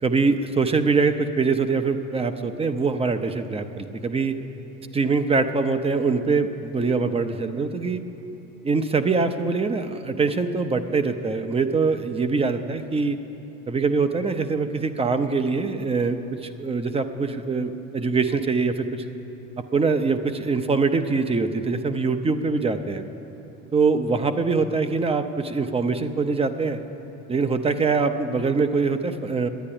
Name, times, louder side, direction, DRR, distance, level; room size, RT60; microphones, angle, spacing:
voice 1, 0.0-4.4 4.9-8.0 8.6-13.2 13.7-19.0 19.7-23.0 23.7-26.8 27.3-29.5, right 4 dB, 20° right, 9 dB, 0.6 m, -23 dB
10.5 x 9.6 x 10.0 m, 3.0 s
cardioid pair, 115°, 33 cm